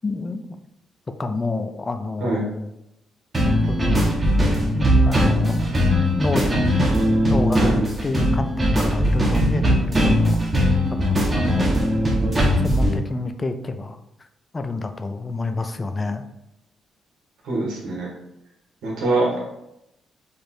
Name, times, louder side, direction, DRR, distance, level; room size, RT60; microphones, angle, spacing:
voice 1, 0.0-0.6 1.2-2.7 3.7-4.2 4.7-5.6 5.9-6.7 7.3-10.4 10.9-11.8 12.6-14.0 14.5-16.2, left 3 dB, 25° left, 8 dB, 0.4 m, -28 dB
sound 1, 3.3-12.9, equal, 25° right, 1.1 m, -19 dB
voice 2, 17.4-18.1 18.8-19.4, right 2 dB, 75° right, -2 dB, 1.6 m, -23 dB
5.0 x 2.5 x 4.4 m, 0.86 s
cardioid pair, 90°, 0 cm